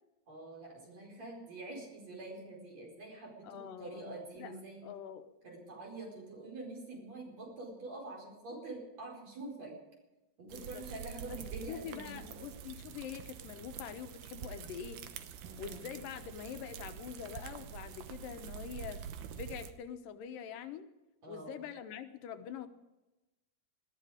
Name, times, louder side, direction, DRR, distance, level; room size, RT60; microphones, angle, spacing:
voice 1, 0.3-4.9 5.4-9.8 10.4-12.4 15.4-15.9 21.2-21.6, right 2 dB, 50° right, -1 dB, 5.8 m, -46 dB
voice 2, 3.4-4.0 4.4-4.5 4.8-5.3 10.4-10.8 11.3-11.4 11.7-15.0 15.6-19.0 19.3-20.9 21.3-22.7, left 8 dB, 80° left, 9 dB, 2.6 m, -44 dB
sound 1, 10.5-19.7, right 8 dB, 75° right, 2.5 m, -46 dB
20.0 x 14.5 x 5.0 m, 1.0 s
omnidirectional pair, 4.0 m